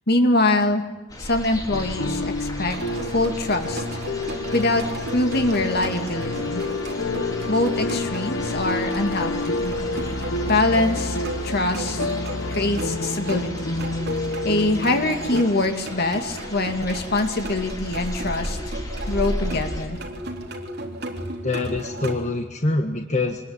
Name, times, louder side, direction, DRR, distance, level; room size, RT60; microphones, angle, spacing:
voice 1, 0.1-0.8 1.2-2.8 3.1-3.8 4.5-4.9 5.1-6.6 7.5-9.8 10.5-11.2 11.4-12.0 12.5-13.8 14.4-18.6 19.1-20.0, left 2 dB, 50° left, 5 dB, 2.5 m, -23 dB
sound 1, 1.1-19.9, equal, 20° left, 4.1 m, -36 dB
sound 2, 1.7-15.4, left 2 dB, 70° left, 1.1 m, -29 dB
sound 3, 2.7-22.2, right 1 dB, 55° right, 3.6 m, -35 dB
voice 2, 21.4-23.5, left 2 dB, 35° left, 4 dB, 1.5 m, -25 dB
26.0 x 20.5 x 9.0 m, 1.2 s
head